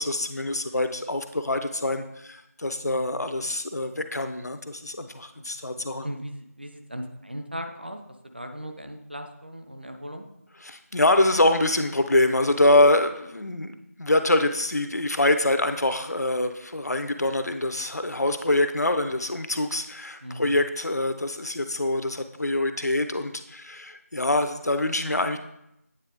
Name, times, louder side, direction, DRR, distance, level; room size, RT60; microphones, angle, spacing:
voice 1, 0.0-6.1 10.6-25.4, left 1 dB, 85° left, 8 dB, 0.7 m, -25 dB
voice 2, 5.7-8.0 8.3-10.2 20.2-20.6, equal, 40° right, 5 dB, 0.6 m, -38 dB
8.9 x 3.3 x 3.5 m, 0.81 s
figure-of-eight pair, 180°, 9 cm